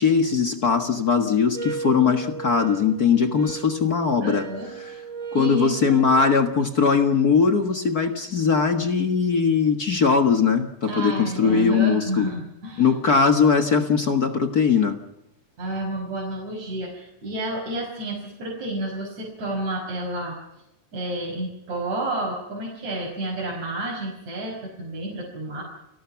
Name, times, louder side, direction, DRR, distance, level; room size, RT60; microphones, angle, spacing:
voice 1, 0.0-4.5 4.8-4.9 5.3-12.2 12.8-15.0, left 5 dB, 45° left, 6 dB, 1.3 m, -20 dB
sound 1, 1.5-6.5, right 5 dB, 25° right, 2.7 m, -36 dB
voice 2, 4.2-5.0 5.3-6.0 10.8-12.9 15.6-20.4 20.9-25.6, right 1 dB, 55° right, -3 dB, 6.6 m, -30 dB
30.0 x 19.0 x 5.9 m, 0.86 s
omnidirectional pair, 3.9 m